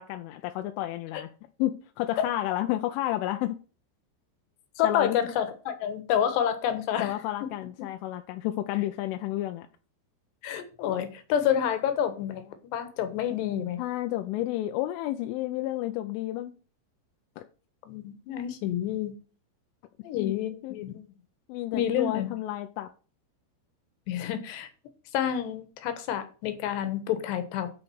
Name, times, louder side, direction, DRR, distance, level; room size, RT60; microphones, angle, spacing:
voice 1, 0.0-1.3 1.6-3.6 4.8-5.2 7.0-9.7 13.8-16.6 17.4-17.5 20.1-20.3 20.6-20.7 21.5-22.9, left 14 dB, 85° left, 3.1 m, -31 dB
voice 2, 4.8-7.1 7.4-7.5 10.4-13.8 17.9-19.1 20.0-21.0 21.7-22.3 24.1-24.7 25.1-27.7, left 9 dB, 70° left, 3.1 m, -29 dB
12.5 x 5.1 x 6.2 m
omnidirectional pair, 5.8 m